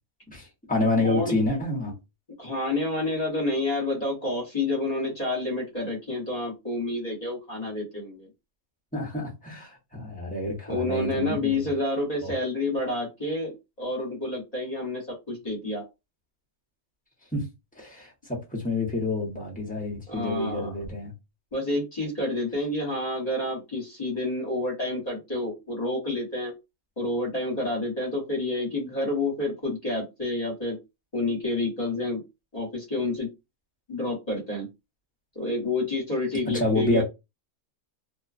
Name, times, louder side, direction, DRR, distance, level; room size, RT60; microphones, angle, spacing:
voice 1, 0.3-1.9 8.9-11.6 12.2-12.3 17.3-17.5 17.8-21.1 36.5-37.0, left 2 dB, 5° left, 0.8 m, -28 dB
voice 2, 1.0-1.4 2.4-8.3 10.7-15.8 20.1-20.7 21.5-26.5 27.0-30.8 31.1-32.2 32.5-33.3 33.9-34.7 35.3-37.0, left 2 dB, 30° left, 1.1 m, -29 dB
2.6 x 2.3 x 2.4 m
omnidirectional pair, 1.5 m